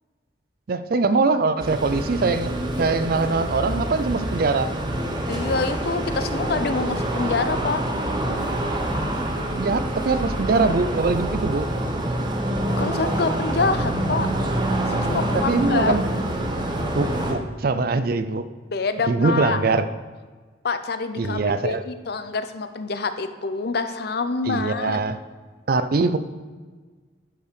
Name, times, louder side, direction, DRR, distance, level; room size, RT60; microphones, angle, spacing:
voice 1, 0.7-4.7 9.5-11.7 15.3-16.0 16.9-18.5 19.1-19.9 21.2-21.8 24.5-25.2 25.7-26.2, right 3 dB, 55° right, 12 dB, 0.5 m, -22 dB
sound 1, 1.6-17.3, right 1 dB, 25° right, 1.0 m, -26 dB
voice 2, 5.3-7.8 12.8-14.3 14.9-16.0 18.7-19.6 20.6-25.0, left 4 dB, 60° left, 10 dB, 0.6 m, -26 dB
11.0 x 5.4 x 5.1 m, 1.4 s
head